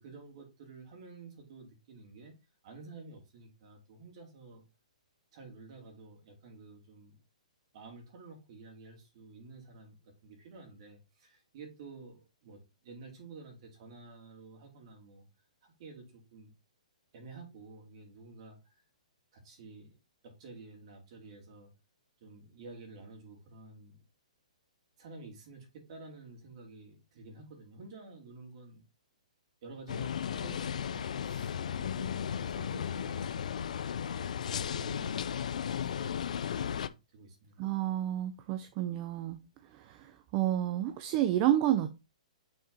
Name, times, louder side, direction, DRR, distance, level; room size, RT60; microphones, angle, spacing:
voice 1, 0.0-2.3 2.6-4.6 5.3-7.2 7.7-15.3 15.6-16.5 17.1-18.6 19.3-20.0 20.2-21.7 22.2-24.0 25.0-28.8 29.6-33.4 34.0-37.7, right 3 dB, 45° right, 2.9 m, -51 dB
sound 1, 29.9-36.9, left 8 dB, 70° left, 0.5 m, -35 dB
voice 2, 37.6-39.4 39.7-41.9, right 12 dB, 30° right, 0.6 m, -30 dB
6.3 x 4.3 x 4.1 m
hypercardioid pair, 155°, 4 cm